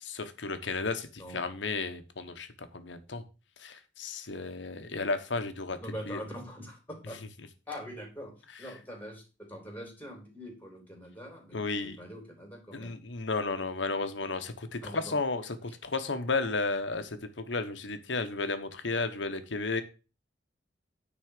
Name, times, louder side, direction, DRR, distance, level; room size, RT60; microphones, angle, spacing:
voice 1, 0.0-2.5 2.7-3.2 3.6-5.8 6.1-6.2 11.5-12.0 12.7-19.8, left 3 dB, 80° left, 9 dB, 1.2 m, -33 dB
voice 2, 5.8-7.2 7.7-13.0 14.8-15.2, equal, 10° left, 1 dB, 3.4 m, -43 dB
9.6 x 4.1 x 6.6 m, 0.32 s
head